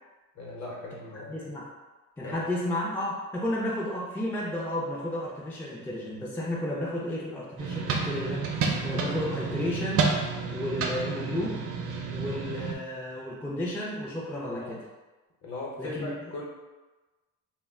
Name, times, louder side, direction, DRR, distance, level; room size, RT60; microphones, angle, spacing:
voice 1, 0.3-1.5 2.2-2.4 14.5-14.8 15.4-16.5, left 2 dB, 50° left, -3 dB, 0.8 m, -39 dB
voice 2, 1.1-1.7 2.2-8.5 8.8-10.1 10.5-11.6 12.1-14.8 15.8-16.3, left 1 dB, 5° left, -5 dB, 0.3 m, -32 dB
sound 1, 7.6-12.7, right 4 dB, 60° right, 0.5 m, -30 dB
2.3 x 2.1 x 3.4 m, 1.2 s
cardioid pair, 115°, 35 cm